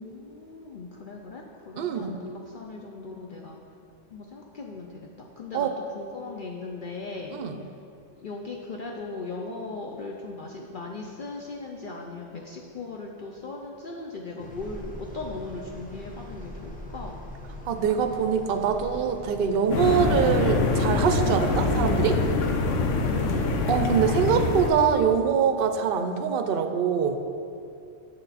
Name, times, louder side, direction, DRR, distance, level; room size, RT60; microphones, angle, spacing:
voice 1, 0.0-3.6 4.1-5.7 5.9-7.3 8.2-17.2 23.2-23.6, left 3 dB, 55° left, -1 dB, 0.6 m, -38 dB
voice 2, 1.8-2.1 5.5-5.8 7.3-7.6 17.7-22.2 23.7-27.2, right 7 dB, 60° right, 7 dB, 0.7 m, -24 dB
sound 1, 14.4-21.6, left 1 dB, 10° left, 0.8 m, -42 dB
sound 2, 19.7-24.7, left 3 dB, 80° left, 1.1 m, -24 dB
7.4 x 6.6 x 4.1 m, 2.5 s
omnidirectional pair, 1.3 m